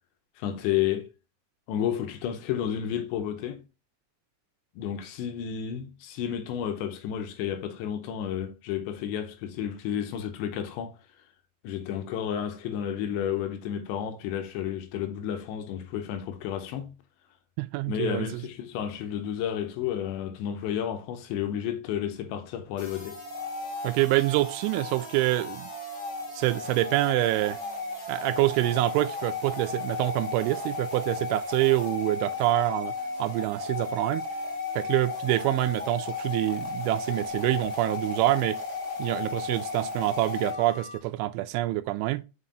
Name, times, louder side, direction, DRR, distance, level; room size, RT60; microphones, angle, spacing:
voice 1, 0.4-1.1 1.7-3.6 4.8-11.0 11.6-16.9 17.9-23.2, left 9 dB, 80° left, 2.9 m, -31 dB
voice 2, 17.6-18.4 23.8-25.7 26.3-27.6 28.1-32.9 33.2-34.2 34.7-38.6 39.0-42.2, right 18 dB, 85° right, 2.9 m, -26 dB
sound 1, 22.8-41.0, left 3 dB, 30° left, 2.1 m, -35 dB
6.5 x 5.6 x 2.7 m
omnidirectional pair, 5.5 m